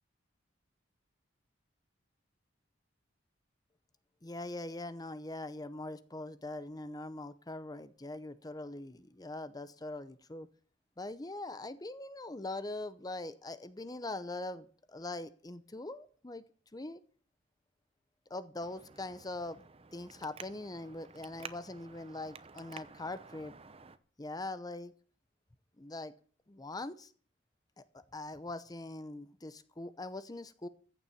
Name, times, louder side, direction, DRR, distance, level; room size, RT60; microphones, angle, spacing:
voice 1, 4.2-10.5 11.0-16.4 16.7-17.0 18.3-19.6 19.9-23.5 24.2-24.9 25.8-26.1 26.5-27.1 27.8-30.7, left 2 dB, 20° left, 13 dB, 0.7 m, -42 dB
Traffic noise roadway noise, 18.6-24.0, right 5 dB, 30° right, 0.8 m, -52 dB
15.0 x 7.0 x 8.5 m, 0.44 s
head